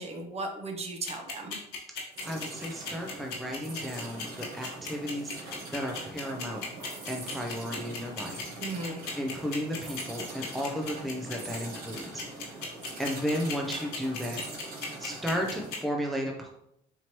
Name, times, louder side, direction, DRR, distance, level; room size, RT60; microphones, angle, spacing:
voice 1, 0.0-1.6 8.6-9.0, right 2 dB, 40° right, 3 dB, 0.8 m, -36 dB
sound 1, 1.1-15.8, left 5 dB, 75° left, 1.3 m, -36 dB
sound 2, 2.1-15.8, right 2 dB, 60° right, 1.3 m, -43 dB
voice 2, 2.2-6.7 7.1-8.5 9.2-12.2 12.5-12.6 13.0-14.4 15.0-16.5, equal, ahead, 0 dB, 0.4 m, -34 dB
4.4 x 2.9 x 2.9 m, 0.77 s
cardioid pair, 110°, 17 cm